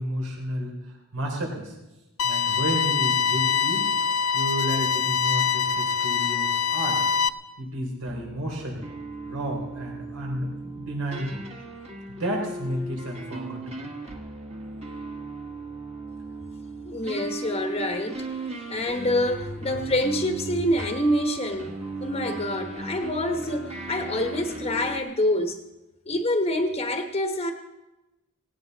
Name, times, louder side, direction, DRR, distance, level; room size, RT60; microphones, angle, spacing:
voice 1, 0.0-1.7 2.2-3.9 4.3-7.0 7.6-8.8 9.3-11.4 12.1-13.9, equal, 75° right, 1 dB, 3.4 m, -32 dB
sound 1, 2.2-7.3, left 6 dB, 75° left, 0.5 m, -24 dB
sound 2, 8.1-25.0, right 2 dB, 30° right, 1.6 m, -37 dB
voice 2, 16.8-18.2 18.7-21.7 22.0-25.6 26.1-27.5, left 1 dB, 30° left, 5 dB, 1.1 m, -26 dB
18.0 x 18.0 x 4.0 m, 1.0 s
head